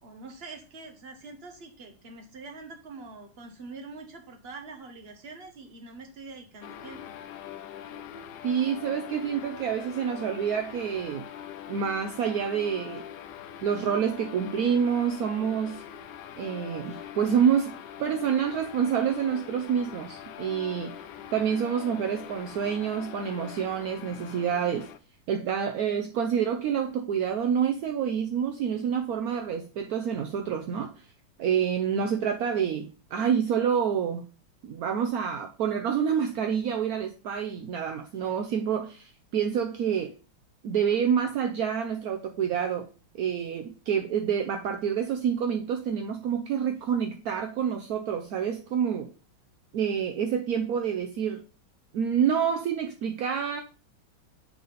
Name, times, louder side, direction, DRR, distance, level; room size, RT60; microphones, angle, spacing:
voice 1, 0.0-7.1, right 3 dB, 35° right, 5 dB, 1.2 m, -44 dB
sound 1, 6.6-25.0, left 10 dB, 75° left, 1.1 m, -43 dB
voice 2, 8.4-11.3 11.7-13.0 13.6-15.8 16.4-17.7 18.0-21.0 21.3-24.9 25.3-30.9 31.4-34.2 34.6-40.1 40.6-42.9 43.1-49.1 49.7-51.4 51.9-53.6, right 8 dB, 70° right, 5 dB, 0.9 m, -27 dB
8.4 x 4.0 x 4.1 m, 0.35 s
omnidirectional pair, 2.2 m